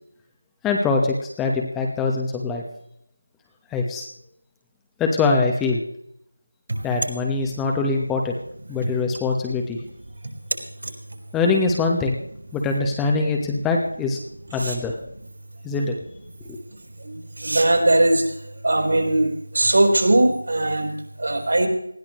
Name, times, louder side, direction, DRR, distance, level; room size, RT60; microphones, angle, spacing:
voice 1, 0.6-2.6 3.7-4.1 5.0-5.8 6.8-8.3 8.7-9.8 11.3-12.2 12.5-14.2 14.5-15.0 15.6-16.0 16.5-16.6, left 3 dB, 5° left, 1 dB, 1.0 m, -23 dB
voice 2, 17.0-18.3 18.6-21.7, right 1 dB, 65° right, 3 dB, 4.3 m, -20 dB
20.0 x 14.5 x 3.1 m, 0.74 s
figure-of-eight pair, 170°, 0 cm